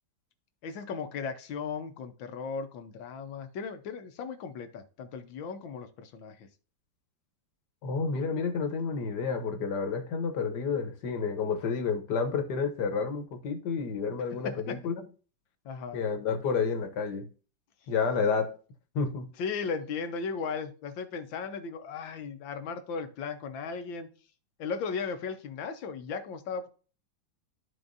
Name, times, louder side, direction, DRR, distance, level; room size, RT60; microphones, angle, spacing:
voice 1, 0.6-6.5 14.3-14.8 15.6-16.0 19.4-24.1 24.6-26.7, left 5 dB, 85° left, 1.7 m, -36 dB
voice 2, 7.8-15.0 15.9-17.3 17.9-18.6 18.9-19.3, left 5 dB, 65° left, 1.6 m, -30 dB
13.0 x 4.4 x 2.6 m
omnidirectional pair, 2.0 m